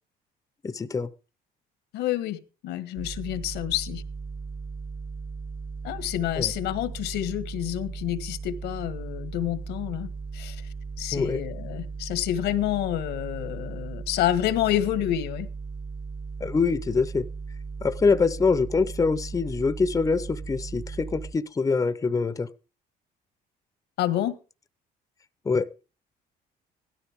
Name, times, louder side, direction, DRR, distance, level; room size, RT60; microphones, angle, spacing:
voice 1, 0.6-1.1 6.4-6.5 11.1-11.4 16.4-17.3 17.8-22.5 25.4-25.7, left 4 dB, 20° left, 0.7 m, -24 dB
voice 2, 1.9-2.4 2.6-4.0 5.8-10.6 11.0-15.5 24.0-24.3, left 12 dB, 85° left, 1.6 m, -28 dB
sound 1, 3.0-21.3, right 5 dB, 60° right, 4.1 m, -37 dB
16.5 x 13.0 x 3.6 m
cardioid pair, 110°, 17 cm